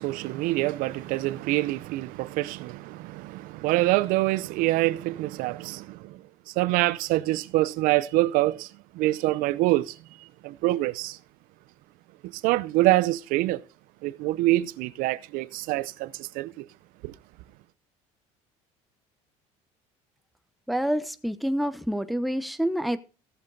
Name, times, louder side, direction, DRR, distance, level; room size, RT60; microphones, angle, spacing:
voice 1, 0.0-6.2 6.6-8.7 8.9-9.9 10.4-11.2 12.4-13.6 14.0-16.6 17.0-17.1, right 18 dB, 75° right, 0.6 m, -25 dB
voice 2, 20.7-23.0, equal, ahead, 0.8 m, -27 dB
15.5 x 7.8 x 3.9 m
supercardioid pair, 105°, 15 cm